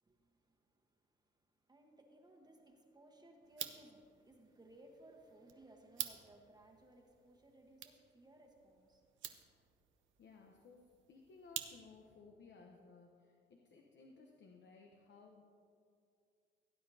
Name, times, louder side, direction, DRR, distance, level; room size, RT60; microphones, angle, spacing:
voice 1, 0.0-9.2, right 1 dB, 20° right, 1 dB, 1.2 m, -62 dB
sound 1, 3.4-12.2, right 11 dB, 75° right, 0.7 m, -50 dB
voice 2, 10.2-15.4, left 4 dB, 60° left, 1 dB, 0.9 m, -60 dB
17.0 x 9.1 x 2.8 m, 2.4 s
cardioid pair, 90°, 20 cm